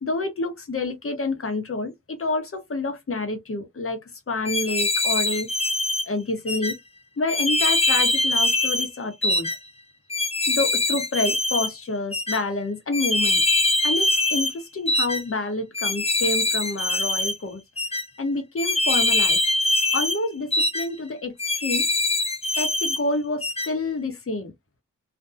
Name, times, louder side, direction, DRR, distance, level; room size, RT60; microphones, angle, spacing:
voice 1, 0.0-5.5 6.1-6.8 7.2-9.5 10.5-13.4 13.8-17.6 18.2-19.4 19.9-21.9 22.6-24.5, left 2 dB, 40° left, 1.0 m, -28 dB
sound 1, 4.4-6.0 6.5-6.7 7.3-8.9 9.2-9.6 10.1-11.7 12.1-12.4 12.9-14.5 14.9-15.2 15.7-17.3 17.8-18.0 18.6-20.2 20.5-20.9 21.4-23.0 23.4-23.7, left 2 dB, 20° left, 0.6 m, -23 dB
2.5 x 2.2 x 2.5 m
cardioid pair, 60°, 33 cm